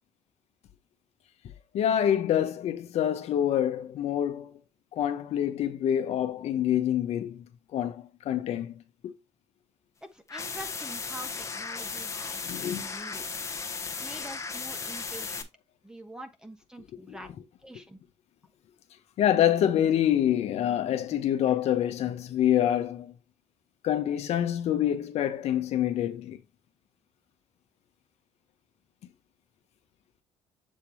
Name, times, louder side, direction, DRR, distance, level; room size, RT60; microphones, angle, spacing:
voice 1, 1.7-4.5 4.9-7.5 7.7-9.1 12.4-12.9 17.1-17.2 19.2-23.1 23.8-26.4, left 10 dB, 70° left, 1.0 m, -26 dB
voice 2, 10.0-13.2 14.0-15.5 15.8-17.3 17.6-18.0, right 1 dB, 5° right, 1.2 m, -45 dB
sound 1, 10.3-15.4, left 4 dB, 25° left, 1.1 m, -36 dB
7.4 x 3.4 x 4.4 m
cardioid pair, 120°, 11 cm